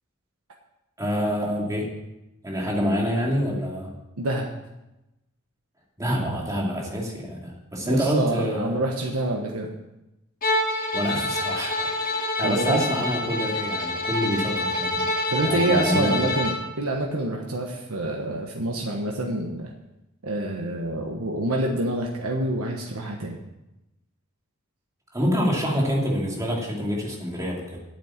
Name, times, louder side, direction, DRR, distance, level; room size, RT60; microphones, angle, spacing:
voice 1, 1.0-1.9 2.4-3.9 6.0-8.8 10.9-15.1 15.4-16.2 25.1-27.8, equal, 15° right, -2 dB, 2.5 m, -26 dB
voice 2, 4.2-4.5 7.8-9.7 12.4-12.8 15.3-19.7 20.2-23.4, right 1 dB, 90° right, 1 dB, 1.3 m, -27 dB
Bowed string instrument, 10.4-16.6, left 2 dB, 40° left, 1.6 m, -27 dB
8.7 x 8.6 x 7.2 m, 0.95 s
head